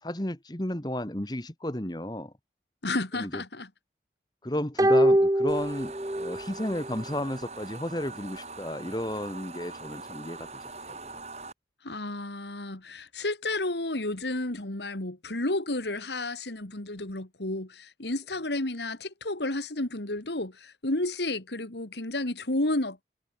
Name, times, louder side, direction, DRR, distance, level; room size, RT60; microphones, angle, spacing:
voice 1, 0.0-2.3 3.1-3.4 4.4-10.5 10.9-11.2, left 1 dB, 25° left, 1.6 m, -33 dB
voice 2, 2.8-3.7 11.8-23.0, left 2 dB, 80° left, 2.5 m, -31 dB
sound 1, 4.8-6.4 6.7-6.8, right 1 dB, 20° right, 0.9 m, -23 dB
sound 2, 5.5-11.5, right 3 dB, 40° right, 6.9 m, -42 dB
head